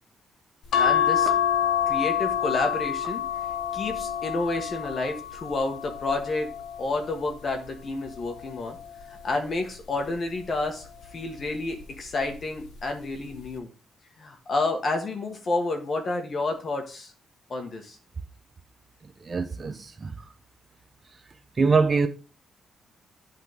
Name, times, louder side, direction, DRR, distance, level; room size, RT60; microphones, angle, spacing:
sound 1, 0.7-7.3 8.0-9.4 10.6-11.0 11.4-11.5, left 9 dB, 85° left, 1.1 m, -28 dB
voice 1, 0.7-1.3 1.9-3.2 3.7-6.5 6.8-8.8 9.2-13.7 14.2-17.1 17.5-18.0, left 2 dB, 40° left, 1.5 m, -30 dB
voice 2, 19.2-20.2 21.6-22.1, right 4 dB, 30° right, 0.6 m, -23 dB
10.5 x 4.0 x 3.6 m
cardioid pair, 130°, 0 cm